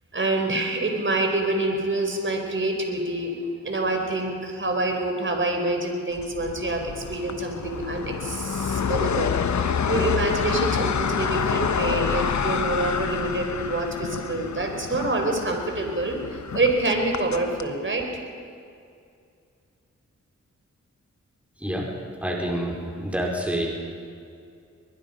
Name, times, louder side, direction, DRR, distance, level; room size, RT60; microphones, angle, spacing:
voice 1, 0.1-3.4 3.6-18.0, right 2 dB, 40° right, 3 dB, 4.3 m, -26 dB
sound 1, 6.2-17.7, left 6 dB, 70° left, 1.2 m, -28 dB
voice 2, 22.2-23.7, equal, 5° right, -2 dB, 5.0 m, -27 dB
22.5 x 21.5 x 5.5 m, 2.4 s
cardioid pair, 65°, 29 cm